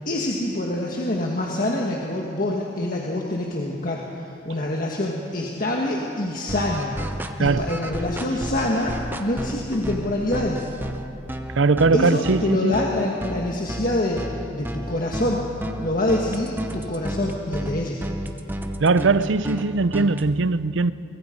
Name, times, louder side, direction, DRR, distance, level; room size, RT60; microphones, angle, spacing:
voice 1, 0.0-6.9 7.4-10.6 11.9-15.5 15.8-18.0, left 1 dB, 45° left, 1.7 m, -26 dB
sound 1, 6.5-20.3, equal, 10° right, 0.8 m, -32 dB
voice 2, 7.4-7.7 11.6-12.8 18.8-20.9, right 3 dB, 80° right, 0.6 m, -20 dB
23.5 x 23.0 x 5.3 m
head